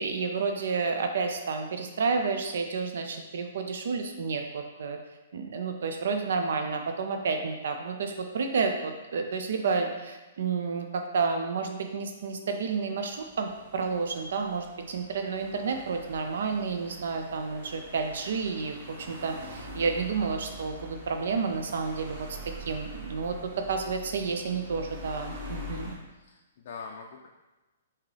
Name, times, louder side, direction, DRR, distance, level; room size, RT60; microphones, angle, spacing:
voice 1, 0.0-5.0 5.3-25.9, right 4 dB, 70° right, 5 dB, 0.4 m, -30 dB
sound 1, 13.1-25.9, equal, 40° right, 1.1 m, -44 dB
voice 2, 26.2-27.3, left 5 dB, 55° left, 0 dB, 0.3 m, -43 dB
3.6 x 2.8 x 3.2 m, 1.1 s
hypercardioid pair, 145°, 0 cm